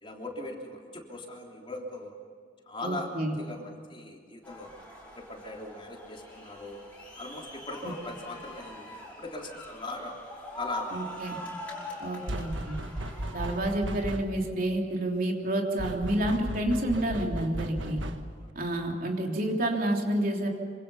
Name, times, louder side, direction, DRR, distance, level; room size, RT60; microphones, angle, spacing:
voice 1, 0.0-2.1 2.7-4.7 5.1-6.8 7.2-10.1 10.6-11.1 18.3-18.5, left 2 dB, 30° left, 0 dB, 3.5 m, -40 dB
voice 2, 2.8-3.4 7.8-7.9 10.9-11.4 12.0-12.8 13.3-18.0 18.5-20.5, right 1 dB, 50° right, 1 dB, 3.3 m, -29 dB
sound 1, 4.4-13.6, left 1 dB, 10° left, 5.5 m, -43 dB
sound 2, 12.3-14.5 15.8-18.5, right 1 dB, 80° right, 1.5 m, -36 dB
26.5 x 25.5 x 5.7 m, 2.3 s
head